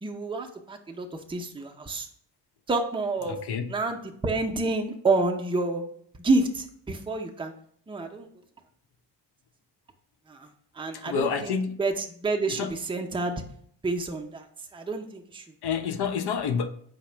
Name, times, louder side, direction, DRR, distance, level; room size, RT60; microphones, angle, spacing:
voice 1, 0.0-2.1 2.7-3.4 3.7-5.8 6.2-7.5 7.9-8.3 10.3-10.5 10.8-13.3 13.8-14.5 14.7-15.4, right 3 dB, 10° right, 0.6 m, -28 dB
voice 2, 3.3-3.7 10.9-11.8 12.5-12.8 15.6-16.7, left 6 dB, 60° left, 0.6 m, -29 dB
4.7 x 2.1 x 4.4 m
supercardioid pair, 50°, 46 cm